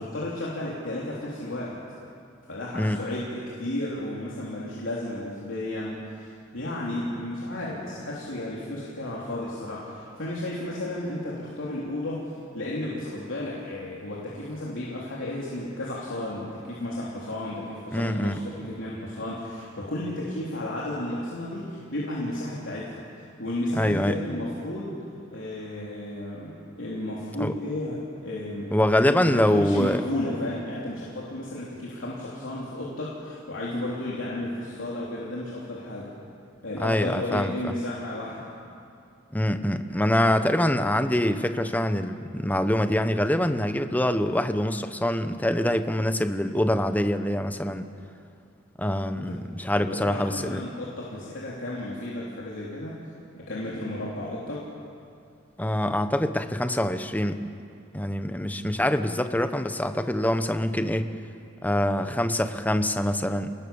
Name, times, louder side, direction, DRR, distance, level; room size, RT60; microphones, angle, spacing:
voice 1, 0.0-1.8 2.5-23.0 23.4-25.0 25.3-28.8 29.1-36.1 36.6-38.5 49.2-49.4 49.8-53.0 53.3-54.7, left 1 dB, 75° left, -6 dB, 3.5 m, -33 dB
voice 2, 17.9-18.4 23.8-24.2 27.4-27.6 28.7-30.0 36.8-37.7 39.3-47.9 48.8-50.6 55.6-57.6 57.9-61.1 61.6-63.5, left 1 dB, 10° left, 9 dB, 0.9 m, -25 dB
28.5 x 19.0 x 7.1 m, 2.5 s
head